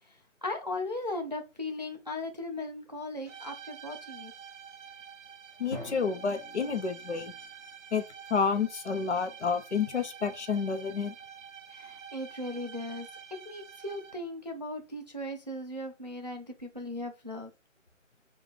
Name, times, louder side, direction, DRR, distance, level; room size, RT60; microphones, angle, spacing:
voice 1, 0.4-4.3 11.7-17.5, left 2 dB, 35° right, 0.4 m, -37 dB
sound 1, 3.2-14.4, right 7 dB, 65° right, 1.0 m, -48 dB
voice 2, 5.6-7.3 7.9-8.0 8.3-11.1, left 5 dB, 60° left, 0.8 m, -29 dB
Drum, 5.7-7.6, left 1 dB, 20° left, 1.0 m, -46 dB
3.2 x 2.4 x 3.8 m
figure-of-eight pair, 165°, 39 cm